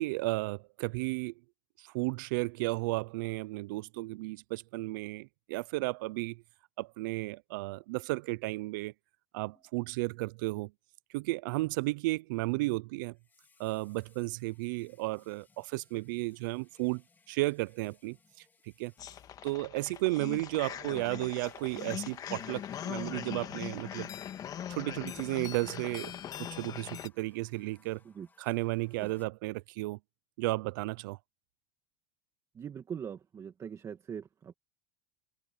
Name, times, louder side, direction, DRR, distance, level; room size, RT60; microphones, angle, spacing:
voice 1, 0.0-1.3 1.8-6.4 6.8-8.9 9.3-10.7 11.1-13.1 13.6-17.0 17.3-18.2 18.8-18.9 19.4-24.1 24.7-26.1 26.6-28.0 28.4-30.0 30.4-31.2, right 22 dB, 75° right, 0.5 m, -33 dB
Water tap faucet, 9.5-9.7 13.1-20.0 20.5-29.3, left 4 dB, 20° left, 4.1 m, -63 dB
sound 1, 19.0-27.1, left 10 dB, 35° left, 1.6 m, -41 dB
voice 2, 32.5-34.5, right 7 dB, 30° right, 2.2 m, -42 dB
supercardioid pair, 120°, 11 cm